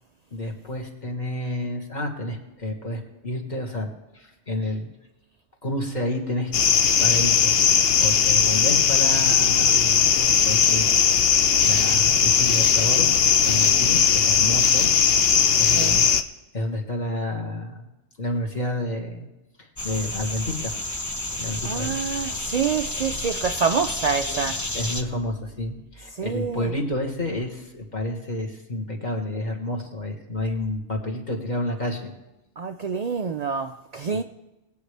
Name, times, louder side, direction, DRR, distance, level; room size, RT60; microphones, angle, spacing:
voice 1, 0.3-4.9 5.6-6.5 7.0-7.6 8.0-11.1 11.6-13.1 13.4-14.9 15.6-16.1 16.5-17.9 18.2-19.3 19.6-20.7 21.4-22.0 24.3-24.4 24.7-32.1 34.1-34.2, left 1 dB, 35° left, 1.8 m, -30 dB
sound 1, 6.5-16.2, left 7 dB, 60° left, 0.8 m, -19 dB
voice 2, 15.6-16.0 21.6-24.6 26.1-26.7 32.6-34.2, right 6 dB, 80° right, 0.3 m, -27 dB
sound 2, 19.8-25.0, left 1 dB, 20° left, 0.7 m, -31 dB
20.5 x 8.6 x 3.3 m
omnidirectional pair, 1.3 m